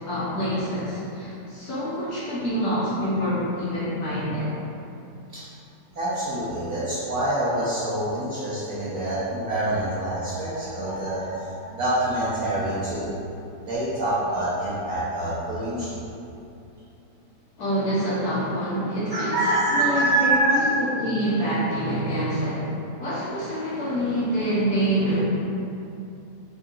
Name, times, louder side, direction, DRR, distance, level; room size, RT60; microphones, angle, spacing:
voice 1, 0.0-4.5 17.6-19.4 19.7-22.7 23.0-25.2, equal, 70° left, -9 dB, 1.3 m, -26 dB
voice 2, 5.9-13.1 13.6-15.9 19.1-20.6, right 1 dB, 65° right, -10 dB, 1.0 m, -25 dB
3.9 x 3.7 x 2.4 m, 2.7 s
omnidirectional pair, 1.8 m